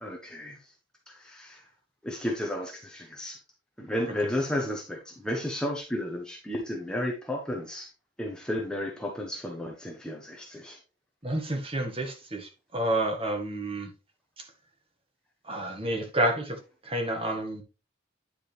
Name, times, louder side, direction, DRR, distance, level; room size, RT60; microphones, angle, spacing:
voice 1, 0.0-0.6 1.1-1.6 2.0-3.4 3.8-7.9 8.2-10.8, left 1 dB, 5° left, 1.2 m, -33 dB
voice 2, 11.2-13.9 15.5-16.6 16.8-17.6, right 1 dB, 30° right, 1.7 m, -29 dB
9.9 x 5.1 x 3.4 m
head